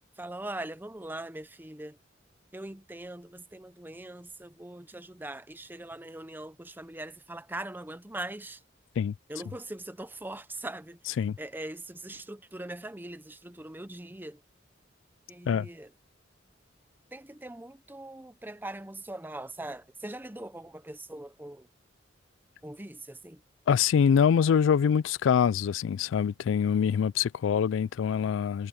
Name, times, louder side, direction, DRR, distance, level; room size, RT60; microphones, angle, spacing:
voice 1, 0.2-2.0 2.5-8.6 9.3-11.0 11.4-14.4 15.3-15.9 17.1-21.7 22.6-23.4, right 1 dB, 10° right, 0.8 m, -41 dB
voice 2, 23.7-28.7, left 7 dB, 80° left, 0.3 m, -24 dB
head